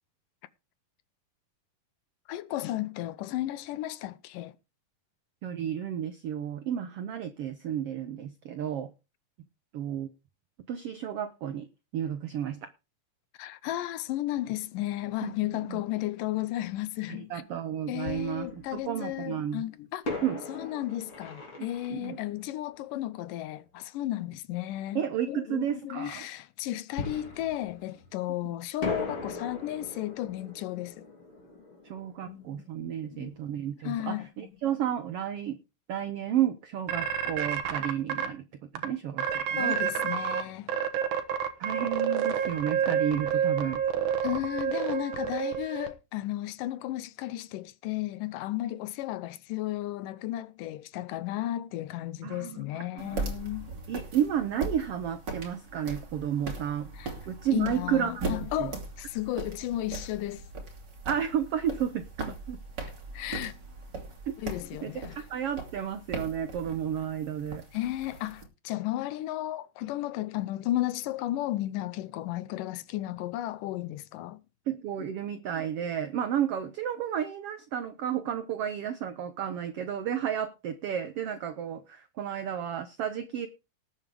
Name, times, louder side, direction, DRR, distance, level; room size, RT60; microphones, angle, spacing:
voice 1, 2.3-4.6 13.4-17.4 17.9-20.0 20.5-31.1 32.2-32.7 33.1-33.4 33.8-34.5 39.5-40.8 44.2-53.7 56.9-57.1 57.5-60.4 63.1-63.5 64.4-65.2 67.7-74.4, left 15 dB, 80° left, 2.2 m, -34 dB
voice 2, 5.4-8.9 9.7-10.1 10.7-11.7 11.9-12.7 15.2-15.3 15.7-15.8 17.1-19.6 20.2-20.4 21.9-22.2 24.9-26.3 31.8-35.6 35.9-38.4 38.7-39.7 41.6-43.8 52.2-53.2 53.9-56.9 57.3-58.3 58.6-58.7 61.0-62.6 64.3-64.4 64.8-64.9 65.3-67.6 74.7-83.5, right 9 dB, 85° right, 1.3 m, -32 dB
Fireworks, 16.7-16.8 18.0-19.2 20.0-23.5 27.0-28.4 28.8-33.4 33.6-33.7 34.2-34.4, left 3 dB, 40° left, 3.7 m, -40 dB
sound 1, 36.9-38.3 38.7-38.8 39.2-40.4 40.7-45.9, right 8 dB, 65° right, 2.5 m, -28 dB
sound 2, 53.0-68.4, right 3 dB, 35° right, 2.8 m, -39 dB
19.0 x 7.7 x 3.5 m
omnidirectional pair, 3.9 m